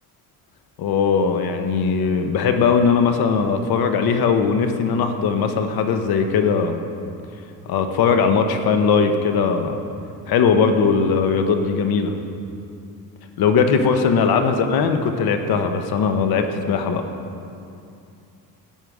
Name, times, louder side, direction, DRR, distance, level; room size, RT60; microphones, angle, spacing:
voice 1, 0.8-6.8 7.7-9.8 10.3-12.2 13.4-17.0, left 5 dB, 80° left, 6 dB, 1.1 m, -19 dB
14.5 x 9.3 x 4.9 m, 2.6 s
cardioid pair, 140°, 37 cm